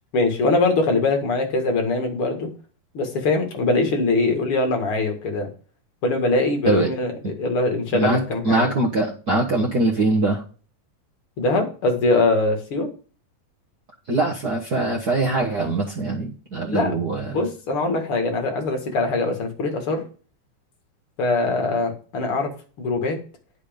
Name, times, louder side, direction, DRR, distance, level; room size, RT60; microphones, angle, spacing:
voice 1, 0.1-2.5 2.9-5.5 6.0-8.6 11.4-12.9 16.7-17.0 17.3-20.0 21.2-22.5 22.8-23.2, left 3 dB, 45° left, 3 dB, 2.4 m, -22 dB
voice 2, 7.9-10.4 14.1-17.4, right 2 dB, 70° right, -1 dB, 0.9 m, -22 dB
9.7 x 6.0 x 5.2 m, 0.38 s
omnidirectional pair, 4.1 m